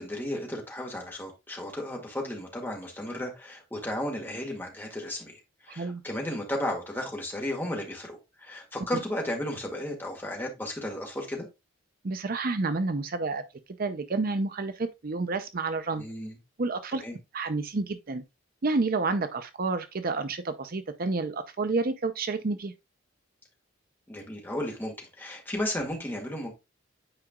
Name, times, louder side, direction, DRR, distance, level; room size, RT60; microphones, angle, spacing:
voice 1, 0.0-11.5 16.0-16.4 17.0-17.2 24.1-26.5, left 1 dB, 10° left, 1.9 m, -34 dB
voice 2, 12.0-13.4 13.8-16.0 16.6-17.0 17.3-18.2 18.6-22.7, right 3 dB, 50° right, 0.6 m, -29 dB
8.9 x 4.9 x 2.3 m
head